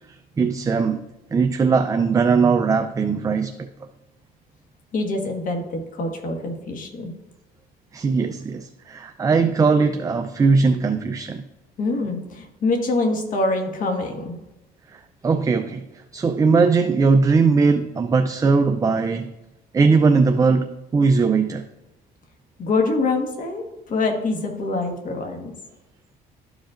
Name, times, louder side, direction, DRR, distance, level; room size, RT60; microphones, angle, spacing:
voice 1, 0.4-1.0 1.3-3.7 7.9-11.4 14.9-19.3 19.7-21.6, right 4 dB, 20° right, 7 dB, 0.4 m, -19 dB
voice 2, 4.9-7.1 11.8-14.4 22.6-25.5, left 3 dB, 50° left, 3 dB, 1.5 m, -25 dB
12.5 x 5.1 x 2.5 m, 0.98 s
cardioid pair, 110°, 17 cm